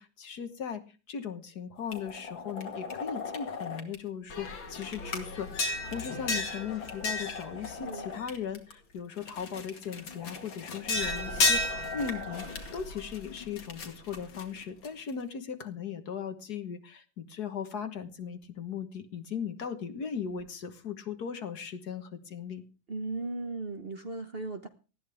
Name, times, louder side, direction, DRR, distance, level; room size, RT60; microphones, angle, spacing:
voice 1, 0.0-22.6, left 7 dB, 55° left, 9 dB, 1.8 m, -38 dB
sound 1, 1.9-3.9 4.3-8.7 9.2-15.1, left 3 dB, 80° left, 3.0 m, -34 dB
voice 2, 22.9-24.7, right 2 dB, 35° right, 7 dB, 1.1 m, -36 dB
19.5 x 14.0 x 3.5 m, 0.34 s
omnidirectional pair, 2.1 m